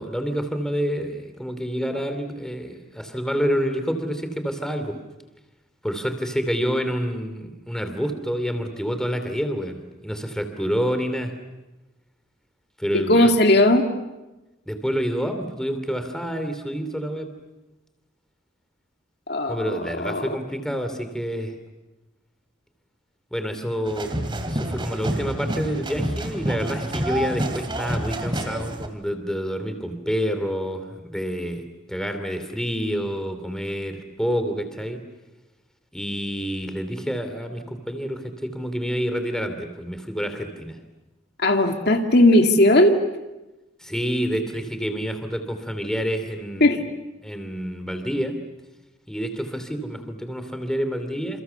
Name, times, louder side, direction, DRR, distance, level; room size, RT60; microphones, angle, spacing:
voice 1, 0.0-5.0 5.8-11.3 12.8-13.3 14.7-17.3 19.5-21.5 23.3-24.1 24.4-35.0 35.9-40.8 43.8-46.8 47.2-48.4 49.1-51.4, equal, 5° left, 7 dB, 2.7 m, -28 dB
voice 2, 12.9-13.9 19.3-20.3 41.4-43.0 46.6-46.8, left 1 dB, 55° left, 4 dB, 2.3 m, -17 dB
samba rehearsal, 23.8-28.9, right 1 dB, 25° right, 2.8 m, -28 dB
29.0 x 28.5 x 7.0 m, 1.1 s
head